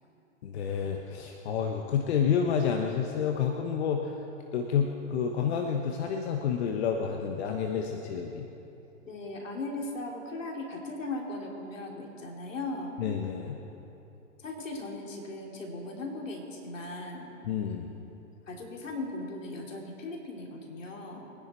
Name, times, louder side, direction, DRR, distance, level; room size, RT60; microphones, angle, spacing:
voice 1, 0.4-4.1 4.5-8.5 13.0-13.6 17.5-17.9, left 7 dB, 55° left, 3 dB, 1.2 m, -29 dB
voice 2, 9.0-13.0 14.4-17.3 18.5-21.3, left 2 dB, 80° left, 0 dB, 3.2 m, -38 dB
23.0 x 10.5 x 4.4 m, 3.0 s
hypercardioid pair, 120°, 38 cm